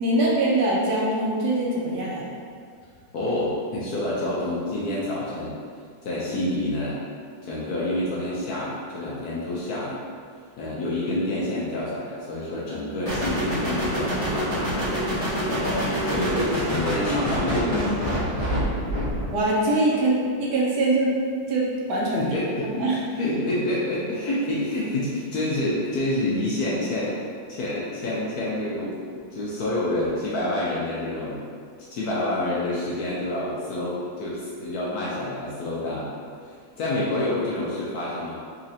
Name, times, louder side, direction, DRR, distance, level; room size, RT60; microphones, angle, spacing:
voice 1, 0.0-2.3 19.3-21.1 21.5-22.3 22.6-23.0, right 2 dB, 70° right, -4 dB, 1.2 m, -23 dB
voice 2, 3.1-5.5 6.0-7.0 7.4-10.0 10.6-14.9 15.5-18.2 18.5-18.8 22.1-22.9 23.2-27.2 27.5-31.4 31.9-36.1 36.4-38.4, left 1 dB, 70° left, -7 dB, 1.0 m, -28 dB
sound 1, 13.1-19.4, equal, 25° left, 0.8 m, -26 dB
4.1 x 2.8 x 2.7 m, 2.1 s
omnidirectional pair, 2.0 m